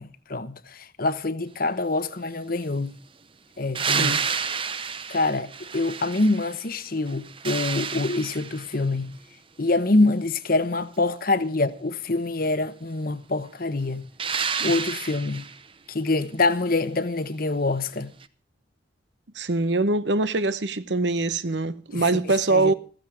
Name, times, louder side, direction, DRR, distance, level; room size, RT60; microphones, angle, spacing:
voice 1, 0.0-3.0 3.6-4.3 5.1-9.2 9.6-14.1 14.6-15.5 15.9-18.1 21.9-22.0 22.5-22.7, left 2 dB, 50° left, 1.1 m, -25 dB
sound 1, 3.8-6.7 7.1-8.8 14.2-15.6 18.2-18.3, right 6 dB, 30° right, 0.8 m, -30 dB
voice 2, 19.3-22.7, right 3 dB, 70° right, 0.9 m, -23 dB
15.0 x 14.5 x 4.9 m
head